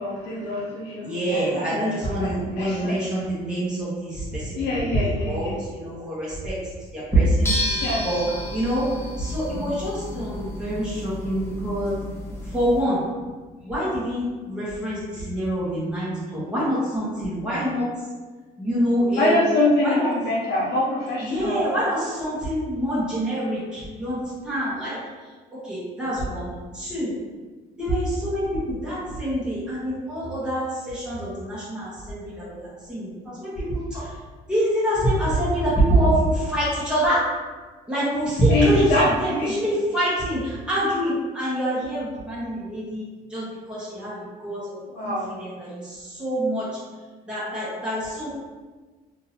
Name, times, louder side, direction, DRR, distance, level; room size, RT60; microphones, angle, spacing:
voice 1, 0.0-3.1 4.6-5.6 7.8-8.1 19.2-21.6 38.5-39.6 44.9-45.3, left 1 dB, 75° left, -4 dB, 0.6 m, -25 dB
voice 2, 1.0-4.5 4.9-6.6 6.9-8.2 8.5-8.8 9.2-12.0 12.5-13.0 13.6-17.9 18.6-19.4 19.8-20.1 21.3-25.0 25.5-26.5 26.7-27.1 27.8-34.1 34.5-37.2 37.9-43.0 43.3-44.6 45.0-46.7 47.3-48.3, right 1 dB, 5° right, -9 dB, 1.2 m, -25 dB
sound 1, 7.4-12.8, left 1 dB, 15° left, 0.8 m, -32 dB
3.8 x 2.7 x 2.7 m, 1.3 s
cardioid pair, 110°, 17 cm